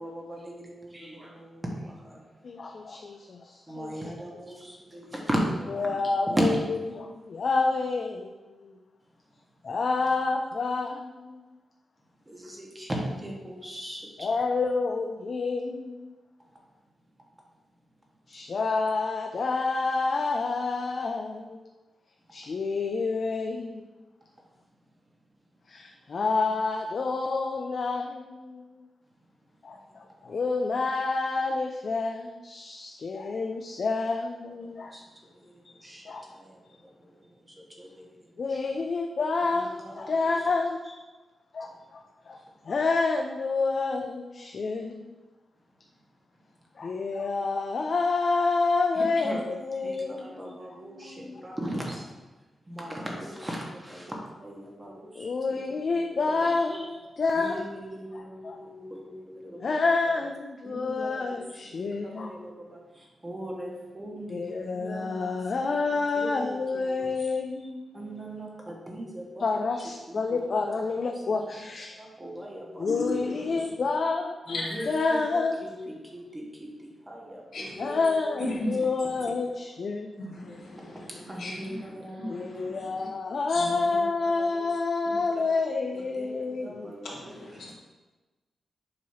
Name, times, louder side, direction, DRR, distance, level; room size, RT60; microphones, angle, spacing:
voice 1, 0.0-2.3 3.7-6.5 10.0-10.2 12.2-14.3 30.2-30.3 34.6-35.0 35.3-38.6 39.4-40.3 48.9-49.4 49.7-52.1 52.7-56.9 57.3-59.9 60.2-60.3 60.6-67.3 67.9-69.7 70.1-71.6 72.0-73.6 74.5-78.4 79.3-79.4 81.1-82.9 83.5-84.1 84.4-84.7 85.0-85.4 85.9-87.5, right 1 dB, 15° right, -1 dB, 1.2 m, -38 dB
voice 2, 2.4-3.9 5.8-6.6 6.9-8.3 8.6-8.7 9.6-11.4 14.2-16.1 18.3-21.7 22.3-23.8 25.7-28.8 29.6-34.9 36.1-36.2 38.4-40.9 41.5-42.4 42.7-45.2 46.8-51.4 55.2-57.7 58.1-58.6 59.6-62.5 64.3-68.1 69.4-72.0 72.8-74.4 74.9-75.6 77.8-80.1 82.3-86.9, left 3 dB, 45° left, 2 dB, 0.4 m, -29 dB
voice 3, 72.9-73.7 74.5-75.1 77.5-78.0 78.4-79.3 80.2-83.1 83.5-83.7 86.0-86.1 87.0-87.7, left 1 dB, 75° left, -5 dB, 2.1 m, -37 dB
7.5 x 3.0 x 5.5 m, 1.2 s
wide cardioid pair, 140°, 0 cm